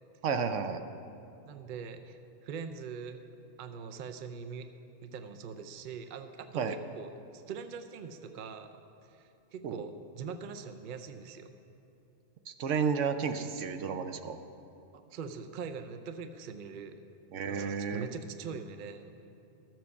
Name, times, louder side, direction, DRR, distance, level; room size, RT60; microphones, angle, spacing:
voice 1, 0.2-0.8 6.5-6.7 9.6-9.8 12.5-14.4 17.3-18.1, right 6 dB, 70° right, 8 dB, 1.0 m, -32 dB
voice 2, 1.5-3.2 3.6-4.7 5.0-11.5 14.9-17.0 17.5-19.1, right 6 dB, 50° right, 8 dB, 0.6 m, -43 dB
13.0 x 7.6 x 7.0 m, 2.8 s
omnidirectional pair, 1.3 m